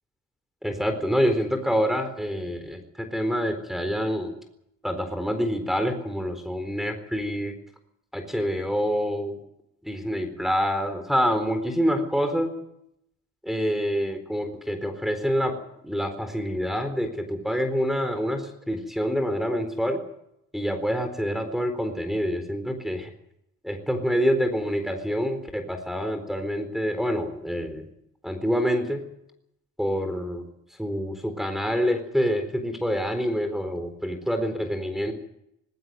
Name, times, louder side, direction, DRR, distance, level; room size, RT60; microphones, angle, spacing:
voice 1, 0.6-4.3 4.8-7.5 8.1-9.4 9.8-12.5 13.4-15.6 15.8-20.0 20.5-23.1 23.6-27.9 28.2-29.0 29.8-30.5 30.8-35.1, equal, ahead, 6 dB, 4.1 m, -26 dB
20.0 x 17.5 x 9.1 m, 0.78 s
cardioid pair, 90°, 30 cm